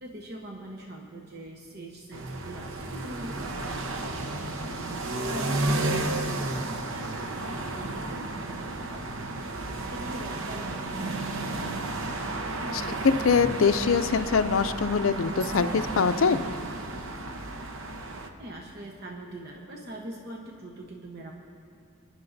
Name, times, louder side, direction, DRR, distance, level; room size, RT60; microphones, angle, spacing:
voice 1, 0.0-12.0 18.4-21.3, right 1 dB, 50° right, -1 dB, 1.1 m, -43 dB
sound 1, 2.1-18.3, right 2 dB, 70° right, 0.9 m, -32 dB
voice 2, 12.7-16.4, left 5 dB, 75° left, 12 dB, 0.5 m, -23 dB
29.5 x 11.0 x 2.7 m, 2.3 s
head